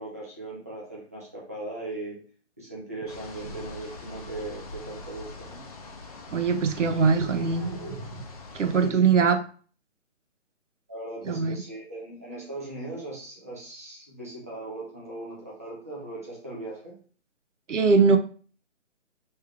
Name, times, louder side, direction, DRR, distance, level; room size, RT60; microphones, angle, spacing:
voice 1, 0.0-2.3 2.6-5.6 6.8-8.2 8.8-9.0 10.9-17.0, right 2 dB, 15° right, 0.4 m, -38 dB
sound 1, 3.1-8.9, left 2 dB, 30° left, 0.6 m, -43 dB
voice 2, 6.3-7.7 8.6-9.4 11.3-11.6 17.7-18.2, right 5 dB, 80° right, 0.7 m, -21 dB
5.4 x 3.3 x 2.3 m
figure-of-eight pair, 145°, 37 cm